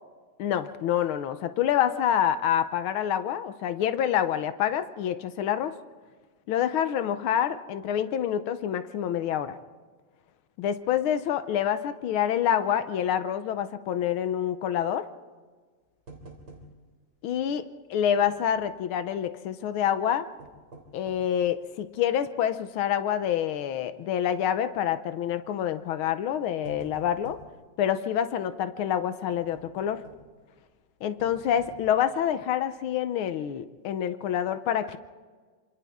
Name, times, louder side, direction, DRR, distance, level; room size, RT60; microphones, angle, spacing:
voice 1, 0.4-5.7 6.5-9.5 10.6-15.1 17.2-17.6 17.9-20.3 20.9-27.4 27.8-30.0 31.0-35.0, left 9 dB, 75° left, 11 dB, 1.2 m, -27 dB
sound 1, 16.1-17.0 17.3-17.4 18.1-18.8 20.2-21.4 22.0-22.1 22.7-23.0 23.3-23.4 24.5-24.8 25.7-25.9 26.3-27.6 29.3-30.4 31.2-32.2 32.7-32.8 33.2-33.3, right 3 dB, 35° right, 3.8 m, -49 dB
27.0 x 27.0 x 3.6 m, 1.5 s
omnidirectional pair, 3.3 m